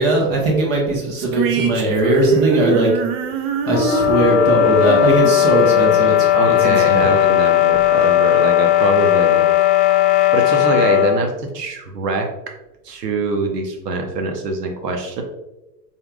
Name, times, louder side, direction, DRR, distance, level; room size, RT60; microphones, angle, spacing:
voice 1, 0.0-2.9 3.7-6.1 6.4-7.1, right 2 dB, 50° right, -2 dB, 1.5 m, -19 dB
sound 1, 1.1-6.5, right 4 dB, 35° right, 0.5 m, -23 dB
sound 2, 3.7-11.2, left 13 dB, 70° left, 0.6 m, -16 dB
voice 2, 6.3-9.5 9.8-12.3 12.8-15.2, right 3 dB, 75° right, 4 dB, 1.0 m, -23 dB
4.3 x 3.6 x 2.4 m, 0.98 s
hypercardioid pair, 95°, 49 cm